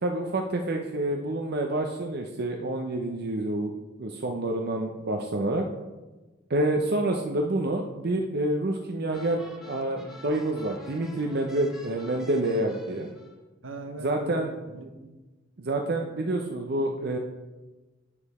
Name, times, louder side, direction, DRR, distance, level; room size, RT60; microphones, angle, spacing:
voice 1, 0.0-3.7 4.0-5.6 6.5-13.1 14.0-14.5 15.6-17.2, right 1 dB, 55° right, 2 dB, 0.7 m, -28 dB
sound 1, 9.1-13.4, left 1 dB, ahead, 1.1 m, -47 dB
voice 2, 13.6-15.1, right 2 dB, 70° right, 6 dB, 1.0 m, -40 dB
8.6 x 7.1 x 4.2 m, 1.2 s
head